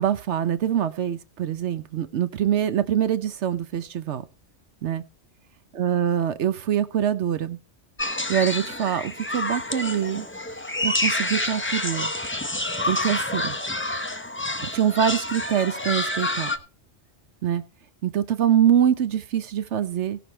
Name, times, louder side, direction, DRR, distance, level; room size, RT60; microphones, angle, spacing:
voice 1, 0.0-4.2 4.8-5.0 5.8-7.6 8.3-10.3 10.8-12.1 12.8-13.6 14.6-16.5 17.4-17.6 18.0-20.2, right 9 dB, 70° right, 12 dB, 1.0 m, -24 dB
sound 1, 8.0-16.6, left 2 dB, 10° left, 0.7 m, -28 dB
17.0 x 6.0 x 4.3 m, 0.33 s
omnidirectional pair, 1.2 m